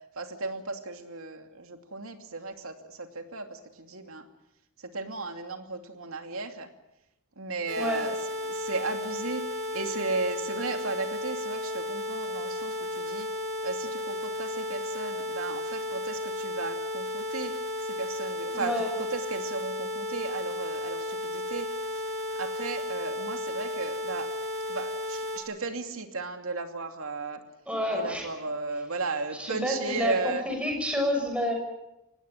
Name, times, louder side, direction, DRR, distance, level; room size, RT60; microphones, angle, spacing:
voice 1, 0.2-4.3 4.8-6.7 7.4-13.3 13.6-17.5 17.8-18.8 19.1-22.0 22.4-24.3 24.7-27.4 27.9-30.4, right 3 dB, 75° right, 6 dB, 2.7 m, -35 dB
sound 1, 7.7-25.4, left 1 dB, 55° right, 7.2 m, -34 dB
voice 2, 18.5-18.9 27.7-28.3 29.4-31.5, equal, 5° right, 2 dB, 6.5 m, -29 dB
24.5 x 19.0 x 9.0 m, 0.89 s
head